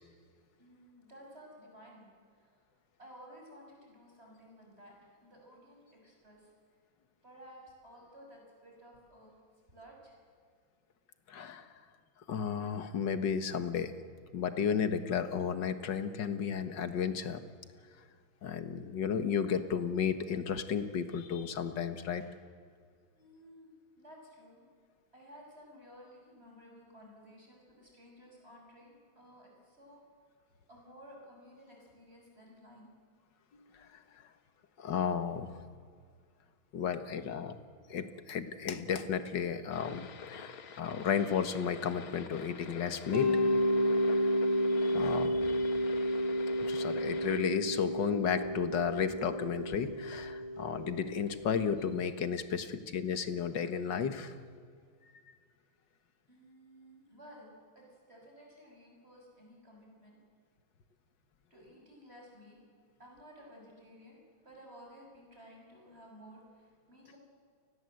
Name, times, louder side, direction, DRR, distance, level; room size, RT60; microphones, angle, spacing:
voice 1, 0.6-2.1 2.4-2.5 3.0-6.5 7.2-9.3 9.7-10.1 22.2-22.3 23.2-24.7 25.1-30.0 30.7-32.9 56.3-60.2 61.5-62.6 63.0-67.2, equal, 30° right, -1 dB, 6.8 m, -55 dB
voice 2, 11.3-11.8 12.3-13.9 14.3-17.4 18.4-22.2 33.5-34.2 34.8-35.7 36.7-37.6 37.9-43.3 44.8-45.8 46.6-54.3 55.3-55.4, left 7 dB, 60° left, 10 dB, 2.0 m, -33 dB
sound 1, 39.7-47.4, left 6 dB, 85° left, 2.3 m, -48 dB
Mallet percussion, 43.1-51.9, equal, 20° left, 3.0 m, -31 dB
29.5 x 20.5 x 7.9 m, 2.1 s
omnidirectional pair, 2.2 m